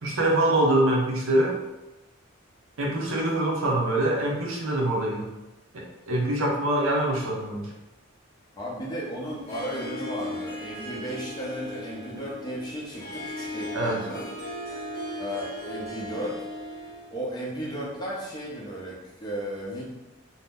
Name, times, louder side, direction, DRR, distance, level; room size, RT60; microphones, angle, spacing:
voice 1, 0.0-1.6 2.8-5.3 5.7-7.7 13.7-14.0, right 1 dB, 80° right, -1 dB, 0.6 m, -24 dB
voice 2, 8.6-14.3 15.2-16.4 17.1-19.8, equal, 20° left, -5 dB, 0.7 m, -34 dB
Harp, 9.3-17.2, left 1 dB, 50° left, 0.9 m, -37 dB
2.7 x 2.0 x 3.5 m, 1.0 s
head